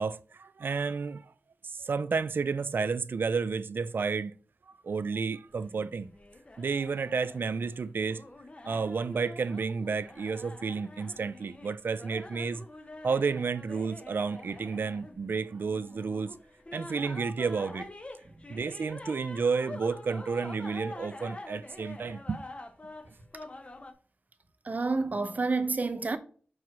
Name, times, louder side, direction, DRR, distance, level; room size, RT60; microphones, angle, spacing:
voice 1, 0.0-1.3 1.6-4.3 4.8-6.1 6.6-8.2 8.6-12.6 13.0-16.4 16.7-17.9 18.5-22.4, right 5 dB, 75° right, 0.4 m, -31 dB
sound 1, 5.5-23.9, left 2 dB, 35° left, 0.9 m, -46 dB
voice 2, 24.6-26.2, right 3 dB, 45° right, 0.9 m, -29 dB
5.3 x 4.6 x 6.0 m
wide cardioid pair, 75°, 4 cm